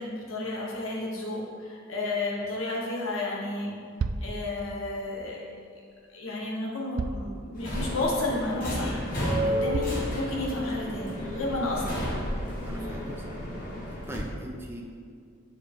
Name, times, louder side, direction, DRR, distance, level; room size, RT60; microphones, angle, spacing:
voice 1, 0.0-3.7 4.2-5.4 6.1-12.0, left 2 dB, 70° left, -3 dB, 1.1 m, -32 dB
sound 1, 3.5-3.6 4.0-4.3 5.9-6.0 7.0-7.3 7.9-8.0 8.6-8.7 9.7-10.1, right 4 dB, 75° right, 0.3 m, -32 dB
Subway metro underground, 7.5-14.2, equal, 40° left, 1.5 m, -32 dB
voice 2, 12.6-13.4 14.1-14.8, right 1 dB, 10° right, 0 dB, 0.6 m, -39 dB
7.0 x 4.7 x 3.7 m, 2.1 s
head